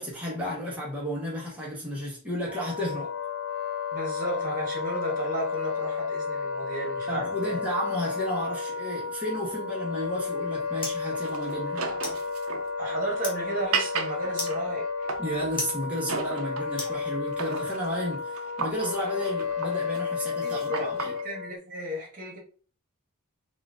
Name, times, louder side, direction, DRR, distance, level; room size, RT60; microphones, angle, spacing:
voice 1, 0.0-3.1 7.1-11.8 15.2-21.1, equal, 5° right, 1.1 m, -32 dB
Wind instrument woodwind instrument, 2.4-21.5, left 5 dB, 75° left, 0.8 m, -32 dB
voice 2, 3.9-7.6 12.8-15.1 20.4-20.6 21.2-22.4, right 1 dB, 40° right, 1.6 m, -34 dB
sound 1, 10.0-17.6, left 2 dB, 25° left, 1.5 m, -42 dB
sound 2, 11.1-15.6 16.1-17.0 17.3-21.2, right 5 dB, 70° right, 0.6 m, -35 dB
4.4 x 2.5 x 3.6 m
head